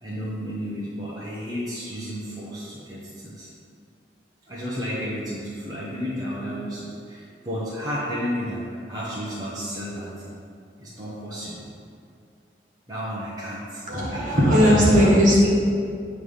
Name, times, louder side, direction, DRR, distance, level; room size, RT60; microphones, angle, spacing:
voice 1, 0.0-3.5 4.5-10.4 10.8-11.7 12.9-14.8, equal, 20° right, -8 dB, 0.9 m, -32 dB
voice 2, 13.9-15.5, equal, 50° right, -5 dB, 1.7 m, -17 dB
8.5 x 3.3 x 5.5 m, 2.4 s
head